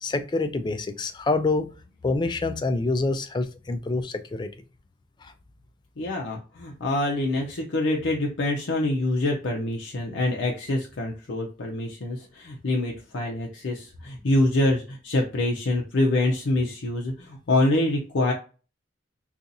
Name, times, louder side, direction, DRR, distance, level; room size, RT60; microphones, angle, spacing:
voice 1, 0.0-1.7 2.0-4.5 5.2-5.3, left 3 dB, 25° left, 0.3 m, -26 dB
voice 2, 6.0-18.3, left 1 dB, 70° left, 0.6 m, -25 dB
2.7 x 2.4 x 3.9 m
head